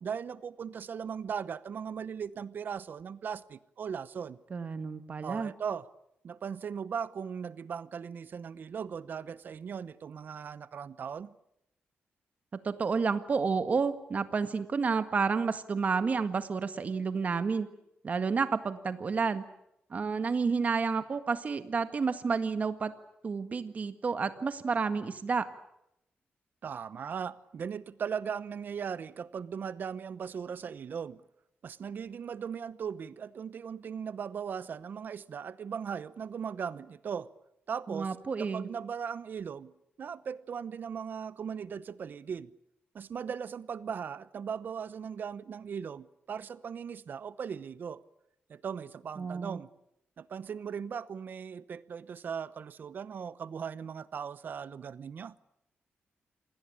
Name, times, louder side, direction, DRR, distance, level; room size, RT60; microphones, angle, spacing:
voice 1, 0.0-4.4 5.2-5.9 6.2-11.4 26.6-31.2 31.6-37.3 37.7-42.5 42.9-48.0 48.5-49.7 50.2-55.4, right 7 dB, 55° right, 0.9 m, -38 dB
voice 2, 4.5-5.5 12.5-17.7 18.0-19.4 19.9-22.9 23.2-25.5 37.9-38.7 49.2-49.6, right 5 dB, 40° right, 1.8 m, -30 dB
27.5 x 19.5 x 8.8 m
wide cardioid pair, 135°, 4 cm